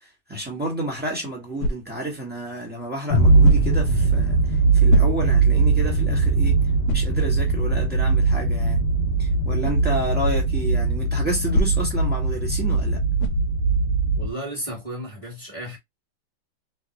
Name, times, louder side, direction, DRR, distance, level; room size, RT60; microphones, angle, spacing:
voice 1, 0.0-6.5 6.9-8.8 9.2-13.0, right 1 dB, 5° right, 1.3 m, -30 dB
sound 1, 1.6-2.1 3.4-3.9 4.9-5.5 6.0-6.1 6.8-7.2 9.6-9.9 11.5-12.0 13.2-13.5, left 1 dB, 85° left, 1.5 m, -24 dB
sound 2, 3.1-14.3, right 3 dB, 45° left, 0.9 m, -20 dB
voice 2, 14.2-15.8, right 1 dB, 15° left, 1.5 m, -33 dB
3.2 x 2.6 x 2.9 m
omnidirectional pair, 2.4 m